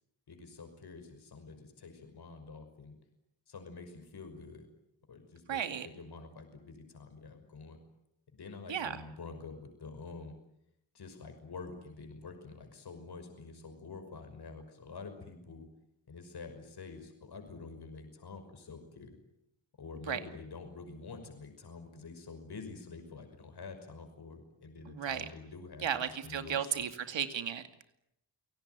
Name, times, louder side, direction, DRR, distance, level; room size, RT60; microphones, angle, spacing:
voice 1, 0.3-2.9 3.5-4.7 5.1-5.6 5.9-7.8 8.3-10.3 10.9-15.7 16.1-19.2 19.8-25.9 26.2-26.9, left 4 dB, 60° left, 6 dB, 5.8 m, -47 dB
voice 2, 5.5-5.9 8.7-9.0 20.1-20.2 24.8-25.2 25.8-27.6, right 8 dB, 80° right, 9 dB, 2.4 m, -34 dB
28.5 x 18.0 x 9.5 m, 0.81 s
cardioid pair, 90°, 44 cm